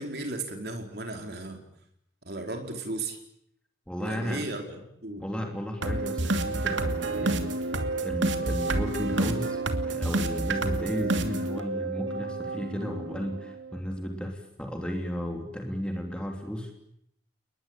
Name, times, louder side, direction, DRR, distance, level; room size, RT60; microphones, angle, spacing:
voice 1, 0.0-1.6 2.2-3.2 4.0-4.8 5.0-5.2, right 2 dB, 55° right, 4 dB, 4.5 m, -35 dB
voice 2, 3.9-4.5 5.2-16.7, equal, 5° left, 2 dB, 3.0 m, -34 dB
sound 1, 5.8-13.8, right 2 dB, 85° right, 2.6 m, -29 dB
29.5 x 21.0 x 9.1 m, 0.74 s
head